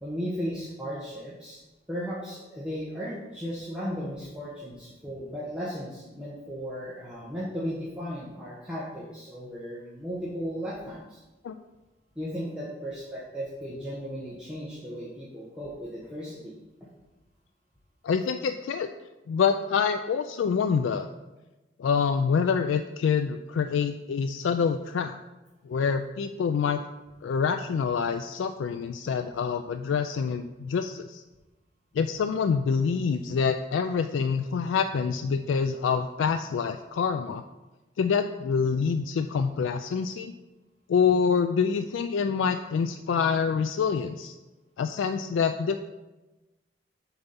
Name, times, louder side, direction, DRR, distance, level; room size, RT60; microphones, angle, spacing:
voice 1, 0.0-1.6 1.9-11.2 12.2-16.6 16.8-16.9, equal, 5° right, -8 dB, 1.0 m, -36 dB
voice 2, 18.0-18.9 19.3-21.1 21.8-25.2 25.6-26.8 27.2-31.2 31.9-37.4 38.0-40.3 40.9-44.3 44.8-45.8, left 6 dB, 85° left, 8 dB, 0.3 m, -26 dB
6.9 x 4.0 x 5.6 m, 1.1 s
head